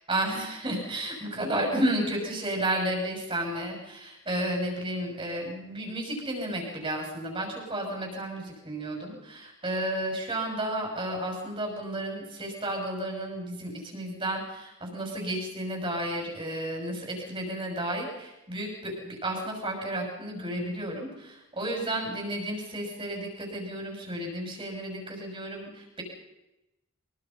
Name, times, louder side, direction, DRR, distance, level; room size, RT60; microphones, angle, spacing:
voice 1, 0.1-26.0, right 1 dB, 25° right, 0 dB, 6.6 m, -32 dB
24.5 x 22.5 x 5.7 m, 0.91 s
head